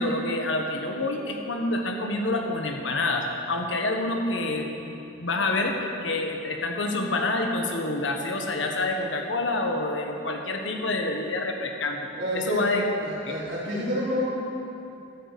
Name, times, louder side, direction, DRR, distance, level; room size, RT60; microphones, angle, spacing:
voice 1, 0.0-12.8 13.2-13.3, left 2 dB, 75° left, 3 dB, 1.3 m, -27 dB
voice 2, 12.1-12.6 13.0-14.2, equal, 85° right, -11 dB, 3.4 m, -28 dB
12.0 x 6.9 x 7.9 m, 2.9 s
head